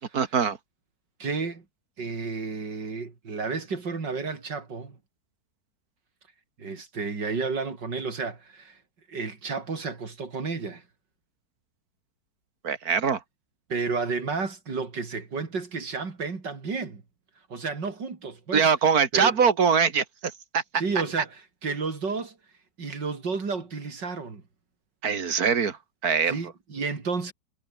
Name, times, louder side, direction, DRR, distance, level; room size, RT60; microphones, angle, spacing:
voice 1, 0.1-0.6 12.6-13.2 18.5-20.6 25.0-25.8 26.0-26.4, right 6 dB, 55° right, 2.2 m, -23 dB
voice 2, 1.2-1.6 2.0-5.0 6.6-8.8 9.1-10.8 13.7-17.0 17.5-18.6 19.1-19.4 20.8-22.4 22.8-24.4 26.3-27.3, right 4 dB, 75° right, 4.0 m, -31 dB
omnidirectional pair, 1.9 m